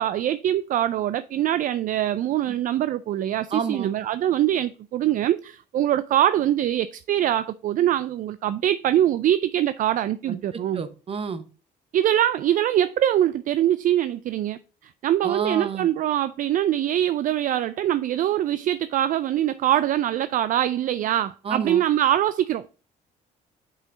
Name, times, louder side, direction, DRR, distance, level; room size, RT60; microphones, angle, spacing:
voice 1, 0.0-10.8 11.9-22.7, right 12 dB, 55° right, 0.4 m, -23 dB
voice 2, 3.5-3.9 10.5-11.5 15.2-15.9 21.4-21.8, right 5 dB, 35° right, 0.9 m, -30 dB
6.0 x 5.6 x 3.8 m
cardioid pair, 110°, 17 cm